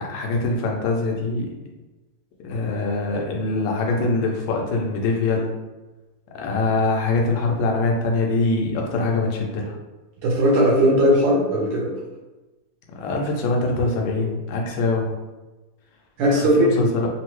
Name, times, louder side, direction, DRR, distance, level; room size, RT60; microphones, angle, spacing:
voice 1, 0.0-1.5 2.4-5.5 6.3-9.8 12.9-15.1 16.4-17.1, left 3 dB, 90° left, 1 dB, 1.5 m, -23 dB
voice 2, 10.2-11.9 16.2-16.7, equal, 70° right, -3 dB, 1.2 m, -18 dB
3.8 x 2.0 x 3.0 m, 1.1 s
omnidirectional pair, 2.4 m